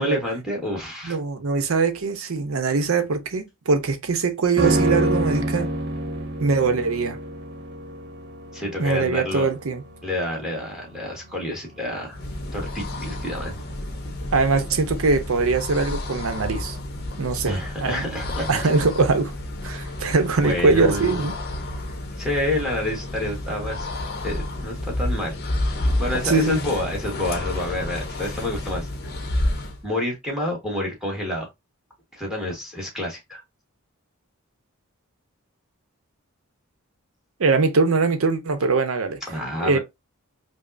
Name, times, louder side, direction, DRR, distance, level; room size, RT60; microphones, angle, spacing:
voice 1, 0.0-1.2 8.5-9.5 10.0-12.2 12.5-13.6 17.4-18.5 20.4-21.2 22.2-23.9 24.2-25.4 25.7-29.1 29.8-31.5 32.1-33.4 39.3-39.8, left 1 dB, 5° right, 1.2 m, -28 dB
voice 2, 1.0-5.7 6.4-7.2 8.8-9.8 14.3-16.8 17.2-18.1 18.5-19.3 19.6-21.3 26.2-26.6 37.4-39.2 39.6-39.8, right 4 dB, 75° right, 0.7 m, -22 dB
sound 1, 4.6-14.0 14.3-14.4, right 1 dB, 55° right, 1.0 m, -28 dB
sound 2, 12.0-29.9, left 1 dB, 50° left, 0.6 m, -30 dB
5.1 x 2.0 x 2.5 m
head